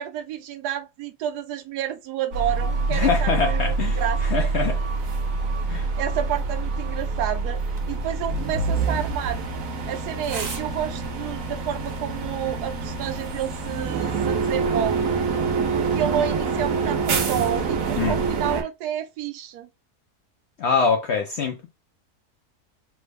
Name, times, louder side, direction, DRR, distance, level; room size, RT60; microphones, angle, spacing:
voice 1, 0.0-4.5 6.0-7.6 7.9-9.5 9.8-15.2 15.7-19.7, right 10 dB, 90° right, 1.1 m, -30 dB
sound 1, 2.3-18.6, right 4 dB, 65° right, 1.1 m, -26 dB
voice 2, 2.9-4.8 5.7-5.9 18.0-18.2 20.6-21.7, left 5 dB, 70° left, 0.6 m, -24 dB
sound 2, 7.6-12.6, right 3 dB, 50° right, 0.5 m, -42 dB
3.4 x 2.0 x 3.3 m
omnidirectional pair, 1.7 m